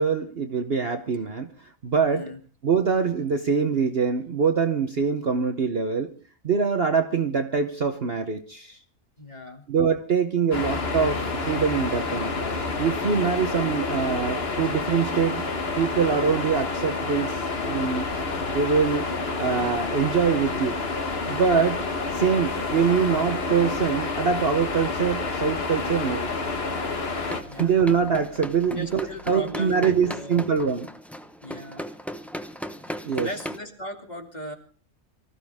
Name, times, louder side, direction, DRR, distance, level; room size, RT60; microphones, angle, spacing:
voice 1, 0.0-1.5 1.8-2.3 2.6-6.2 6.4-8.8 9.7-12.3 12.8-15.5 15.8-18.1 18.5-19.1 19.4-20.8 21.3-21.9 22.1-26.2 27.2-30.9 33.0-33.3, right 6 dB, 45° right, 6 dB, 1.1 m, -24 dB
voice 2, 2.0-2.4 9.2-9.6 27.5-27.7 28.6-30.4 31.4-31.8 33.1-34.5, equal, 30° left, 3 dB, 2.7 m, -37 dB
sound 1, 10.5-27.4, left 3 dB, 45° left, 1.7 m, -29 dB
sound 2, 17.1-30.1, left 5 dB, 75° left, 4.8 m, -49 dB
sound 3, 27.2-33.6, equal, ahead, 0.7 m, -37 dB
24.5 x 14.5 x 3.5 m, 0.39 s
omnidirectional pair, 1.6 m